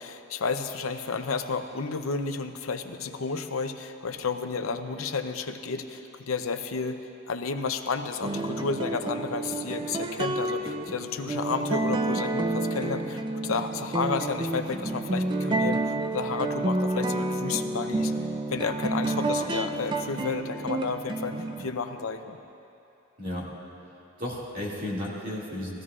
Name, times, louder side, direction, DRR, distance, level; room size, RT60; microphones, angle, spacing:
voice 1, 0.0-7.0 7.3-15.8 16.1-18.1 18.5-21.3 21.6-22.4, left 4 dB, 85° left, 7 dB, 0.7 m, -31 dB
sound 1, 8.2-21.7, right 2 dB, 25° right, 0.4 m, -29 dB
voice 2, 23.2-23.5 24.2-25.8, left 1 dB, 45° right, -6 dB, 2.3 m, -33 dB
19.5 x 15.0 x 2.4 m, 2.8 s
head